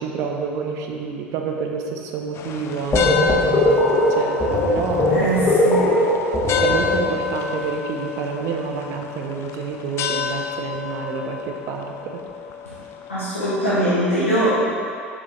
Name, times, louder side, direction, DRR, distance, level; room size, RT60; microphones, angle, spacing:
voice 1, 0.0-5.3 6.6-12.2, right 5 dB, 55° right, 2 dB, 0.7 m, -29 dB
sound 1, 2.3-13.2, left 7 dB, 40° left, 0.4 m, -30 dB
sound 2, 2.9-7.4, left 1 dB, 25° left, 1.2 m, -19 dB
voice 2, 5.1-6.0 12.7-12.8 13.1-14.6, right 1 dB, 85° left, -12 dB, 1.3 m, -21 dB
6.8 x 5.2 x 3.2 m, 2.5 s
figure-of-eight pair, 65°, 7 cm